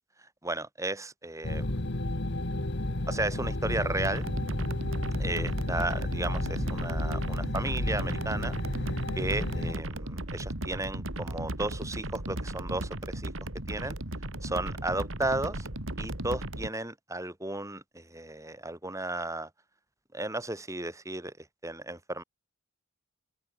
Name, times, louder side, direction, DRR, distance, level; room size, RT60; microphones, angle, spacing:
voice 1, 0.4-1.7 3.1-4.3 5.2-8.5 9.1-13.3 13.7-13.9 14.4-15.7 16.0-19.5 20.1-21.3 21.6-22.2, right 2 dB, 15° right, 6.3 m, -34 dB
sound 1, 1.4-9.7, left 1 dB, 55° left, 1.9 m, -32 dB
sound 2, 4.0-16.7, right 1 dB, 65° right, 3.7 m, -36 dB
open air
head